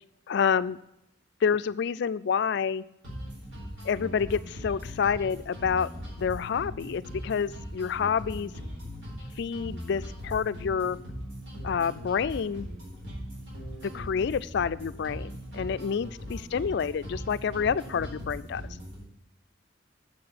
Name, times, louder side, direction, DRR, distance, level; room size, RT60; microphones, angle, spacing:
voice 1, 0.3-0.8 1.4-2.8 3.8-5.9 6.2-8.5 9.4-11.0 11.6-12.7 13.8-18.6, left 6 dB, 60° left, 15 dB, 0.3 m, -28 dB
sound 1, 3.0-19.0, equal, 80° right, 4.2 m, -40 dB
7.4 x 5.8 x 7.7 m, 0.85 s
head